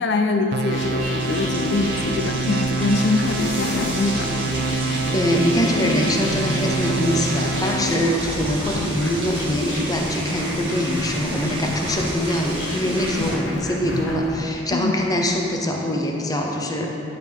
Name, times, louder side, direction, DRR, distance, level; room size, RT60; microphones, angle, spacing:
voice 1, 0.0-4.3 13.2-13.3 14.7-14.9, left 3 dB, 65° left, 5 dB, 0.5 m, -23 dB
sound 1, 0.5-8.1, right 3 dB, 60° right, 0.6 m, -26 dB
sound 2, 0.7-14.4, left 1 dB, 85° left, 1.2 m, -31 dB
sound 3, 1.0-13.4, right 2 dB, 30° right, 1.5 m, -33 dB
voice 2, 5.1-16.9, equal, 20° left, 1 dB, 0.7 m, -23 dB
11.0 x 6.8 x 3.5 m, 2.9 s
head